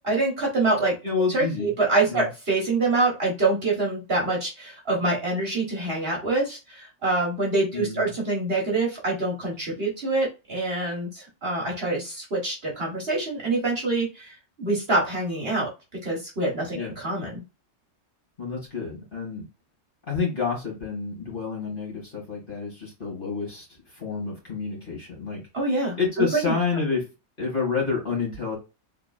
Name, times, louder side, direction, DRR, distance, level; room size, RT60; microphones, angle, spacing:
voice 1, 0.0-0.9 1.3-15.7 16.0-17.4 25.5-25.9 26.3-26.5, right 2 dB, 45° right, -2 dB, 1.4 m, -25 dB
voice 2, 1.0-1.7 2.1-2.3 7.7-8.1 16.7-16.9 18.4-19.4 20.1-25.4 26.0-27.0 27.4-28.6, left 5 dB, 35° left, -3 dB, 2.1 m, -29 dB
3.7 x 3.7 x 2.3 m, 0.28 s
omnidirectional pair, 1.5 m